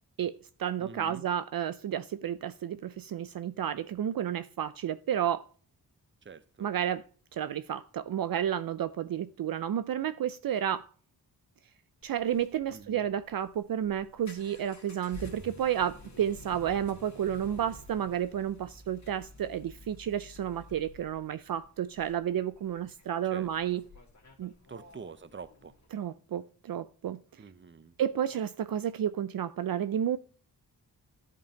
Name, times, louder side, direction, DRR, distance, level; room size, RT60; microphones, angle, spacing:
voice 1, 0.2-5.5 6.6-7.0 7.3-10.9 12.0-23.8 24.4-24.5 25.9-27.2 28.0-30.2, right 10 dB, 65° right, 0.5 m, -31 dB
voice 2, 0.8-1.3 6.2-6.7 12.7-13.0 23.3-23.5 24.7-25.7 27.4-28.0, right 5 dB, 30° right, 0.7 m, -46 dB
sound 1, 12.0-25.9, left 2 dB, 45° left, 1.9 m, -51 dB
11.5 x 5.3 x 2.8 m
cardioid pair, 70°, 38 cm